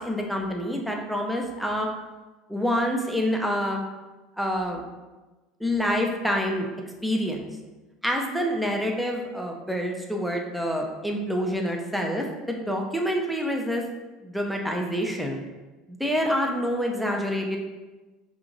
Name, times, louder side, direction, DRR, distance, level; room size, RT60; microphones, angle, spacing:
voice 1, 0.0-1.9 2.5-3.8 4.4-4.8 5.6-6.7 7.0-7.5 8.0-13.8 14.2-15.4 15.9-17.6, equal, ahead, 1 dB, 0.6 m, -27 dB
5.0 x 2.9 x 2.5 m, 1.2 s
supercardioid pair, 120°, 0 cm